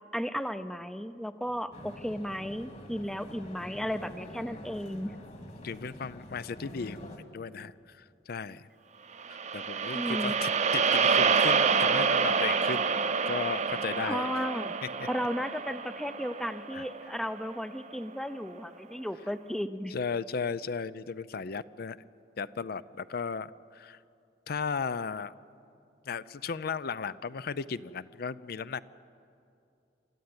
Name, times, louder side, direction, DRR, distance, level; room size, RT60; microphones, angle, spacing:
voice 1, 0.1-5.1 9.9-10.3 14.0-14.7 15.1-19.9, equal, ahead, 12 dB, 0.6 m, -34 dB
sound 1, 1.7-7.2, left 1 dB, 40° left, 2.2 m, -46 dB
voice 2, 5.6-7.0 7.3-8.7 9.3-12.9 13.3-14.3 15.0-15.1 16.7-16.8 19.9-22.0 22.4-24.0 24.5-25.3 26.1-28.8, left 5 dB, 60° left, 16 dB, 0.5 m, -35 dB
sound 2, 9.2-17.5, right 5 dB, 40° right, 0.8 m, -28 dB
27.5 x 13.0 x 9.6 m, 2.6 s
head